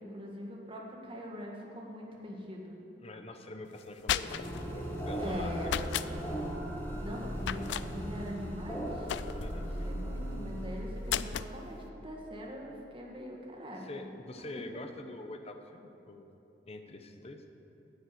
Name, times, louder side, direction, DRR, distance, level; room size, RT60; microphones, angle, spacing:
voice 1, 0.0-2.8 5.2-5.7 7.0-9.1 9.5-14.1 14.4-14.5, equal, 30° right, -2 dB, 1.7 m, -42 dB
voice 2, 3.0-4.3 4.7-6.2 9.4-9.9 13.8-16.3 16.7-17.4, left 2 dB, 35° left, 6 dB, 0.8 m, -45 dB
sound 1, 3.8-4.6 5.6-6.1 7.4-7.9 9.1-9.6 11.1-11.5, left 10 dB, 75° left, 0.3 m, -34 dB
sound 2, 4.2-12.2, equal, 15° left, 1.9 m, -38 dB
10.5 x 8.0 x 7.8 m, 3.0 s
head